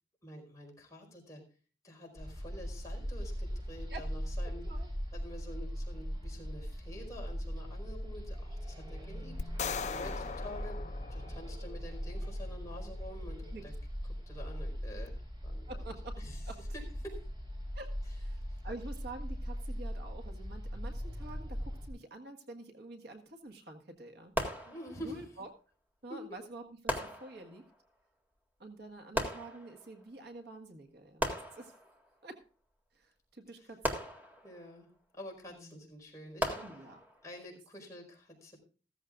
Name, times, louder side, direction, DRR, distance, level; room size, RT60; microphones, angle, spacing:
voice 1, 0.2-1.4 1.8-4.7 5.1-10.8 11.1-13.7 14.3-15.8 16.2-16.4 16.7-17.2 24.6-25.2 26.1-26.2 33.6-33.7 34.4-34.9 35.1-36.6 37.2-38.6, equal, 20° left, -1 dB, 4.9 m, -48 dB
sound 1, 2.2-21.9, equal, 25° right, 4.1 m, -40 dB
voice 2, 4.4-4.9 9.8-10.2 13.5-13.6 15.7-16.6 17.7-24.3 25.0-25.5 26.0-27.7 28.6-31.7 32.2-32.4 32.9-34.0 35.5-35.9 36.6-37.0, right 2 dB, 60° right, 4 dB, 1.7 m, -48 dB
sound 2, 9.4-11.8, left 6 dB, 40° left, 0.5 m, -39 dB
sound 3, 24.4-25.3 26.9-27.8 29.2-30.0 31.2-32.1 33.8-34.8 36.4-37.3, equal, 10° right, 1.8 m, -37 dB
15.5 x 14.0 x 2.5 m, 0.37 s
head